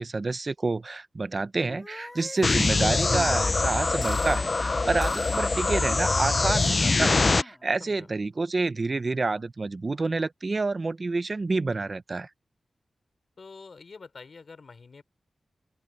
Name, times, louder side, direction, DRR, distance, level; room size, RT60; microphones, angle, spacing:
voice 1, 0.0-12.3, right 3 dB, 40° right, 0.8 m, -28 dB
sound 1, 1.7-3.4 4.0-4.4 5.0-5.4 5.9-7.6, left 1 dB, 20° left, 2.9 m, -40 dB
sound 2, 2.4-7.4, left 3 dB, 40° left, 0.6 m, -24 dB
voice 2, 13.4-15.0, left 4 dB, 55° left, 4.5 m, -46 dB
open air
wide cardioid pair, 100°, 0 cm